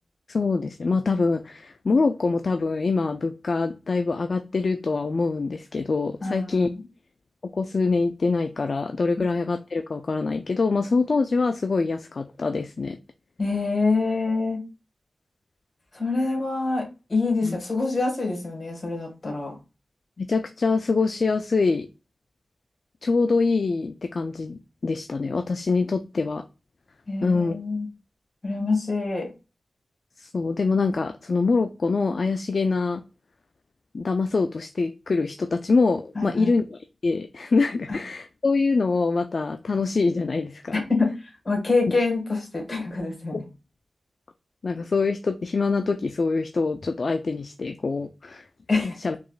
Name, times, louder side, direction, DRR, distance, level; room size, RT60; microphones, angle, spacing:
voice 1, 0.3-6.7 7.5-13.0 17.4-17.6 20.2-21.9 23.0-26.4 27.2-27.6 30.2-33.0 33.9-40.8 44.6-48.4 48.8-49.2, left 4 dB, 65° left, 8 dB, 0.4 m, -24 dB
voice 2, 6.2-6.7 13.4-14.6 15.9-19.5 27.1-27.9 28.4-29.3 36.2-36.6 40.7-41.1 41.5-43.5 48.7-49.0, left 3 dB, 45° left, 1 dB, 2.0 m, -26 dB
4.8 x 3.1 x 2.4 m, 0.30 s
cardioid pair, 50°, 0 cm